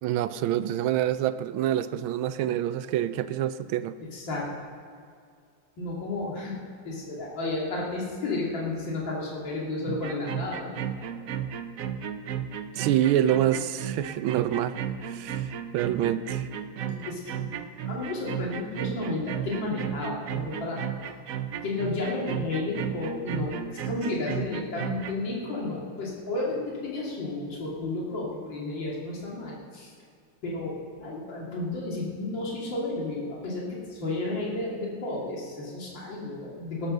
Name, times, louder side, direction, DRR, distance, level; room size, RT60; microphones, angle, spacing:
voice 1, 0.0-3.9 12.8-14.8 15.1-16.5, right 11 dB, 85° right, 1.4 m, -26 dB
voice 2, 4.1-4.5 5.8-6.6 6.8-10.7 11.1-11.3 16.9-17.5 17.9-20.8 21.6-29.9 30.4-36.9, left 2 dB, 65° left, 3.3 m, -32 dB
sound 1, 9.9-25.2, right 8 dB, 65° right, 0.8 m, -34 dB
18.0 x 8.7 x 6.6 m
omnidirectional pair, 2.2 m